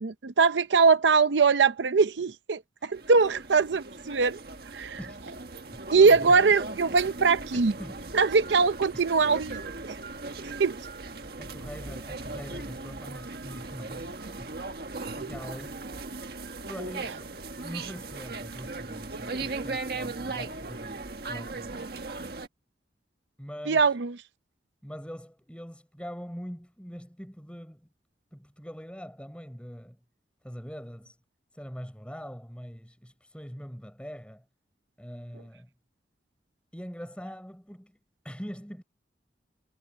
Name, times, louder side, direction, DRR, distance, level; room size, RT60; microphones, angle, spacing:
voice 1, 0.0-4.4 4.7-5.0 5.9-7.7 8.1-10.0 10.6-10.8 23.7-24.1, right 4 dB, 90° right, 0.6 m, -22 dB
sound 1, 2.9-22.5, right 3 dB, 60° right, 1.6 m, -38 dB
voice 2, 5.7-6.4 7.5-8.0 8.9-9.1 11.4-14.8 15.2-15.9 16.7-21.9 23.4-24.0 24.8-27.9 28.3-30.0 30.4-31.2 31.5-34.4 35.0-35.7 36.7-38.0 38.2-38.8, equal, 5° left, 6.7 m, -43 dB
head